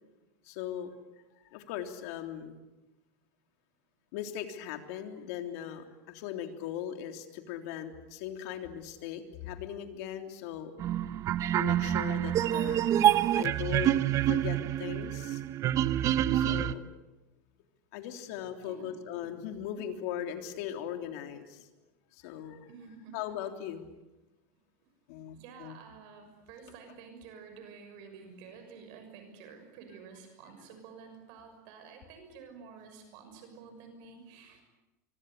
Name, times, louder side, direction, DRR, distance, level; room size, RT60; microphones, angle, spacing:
voice 1, 0.4-0.9 1.5-2.6 4.1-10.7 11.5-14.0 14.2-15.4 16.3-16.8 17.9-21.7 22.1-22.7 23.1-23.9 25.1-25.7, left 10 dB, 70° left, 6 dB, 3.5 m, -39 dB
sound 1, 10.8-16.7, right 11 dB, 40° right, 0.9 m, -27 dB
voice 2, 18.6-18.9 19.7-19.9 22.7-23.2 25.3-34.6, right 5 dB, 60° right, 6 dB, 6.4 m, -50 dB
25.5 x 24.5 x 8.3 m, 1.0 s
supercardioid pair, 145°, 9 cm